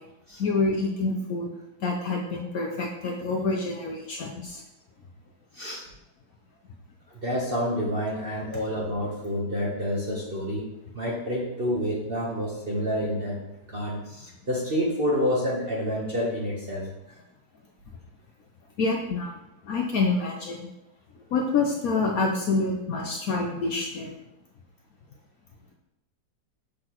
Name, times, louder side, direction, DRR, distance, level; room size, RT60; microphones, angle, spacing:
voice 1, 0.4-1.5 1.8-4.6 18.8-19.4 19.6-20.7 21.3-24.1, left 3 dB, 65° left, 1 dB, 1.0 m, -27 dB
voice 2, 7.2-10.7 10.9-13.4 13.7-16.8, equal, 40° right, -3 dB, 0.9 m, -28 dB
6.5 x 5.9 x 3.0 m, 0.89 s
omnidirectional pair, 2.0 m